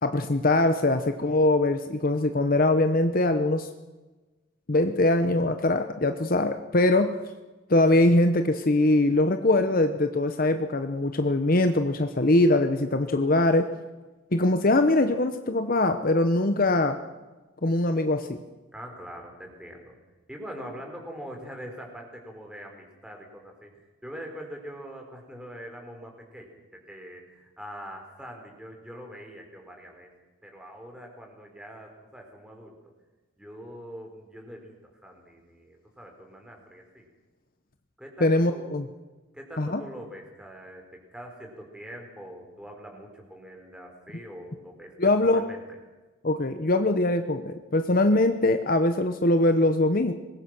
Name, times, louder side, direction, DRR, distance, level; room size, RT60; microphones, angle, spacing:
voice 1, 0.0-3.7 4.7-7.2 7.7-13.7 14.3-17.0 17.6-18.4 38.2-38.9 39.6-39.8 45.0-45.4 46.2-50.1, left 2 dB, 45° left, 8 dB, 1.0 m, -22 dB
voice 2, 18.7-19.9 20.3-23.7 24.0-30.1 30.4-32.7 33.4-34.7 35.0-37.1 38.0-38.8 39.3-45.6, equal, 5° right, 2 dB, 4.3 m, -43 dB
24.5 x 21.0 x 6.2 m, 1.2 s
head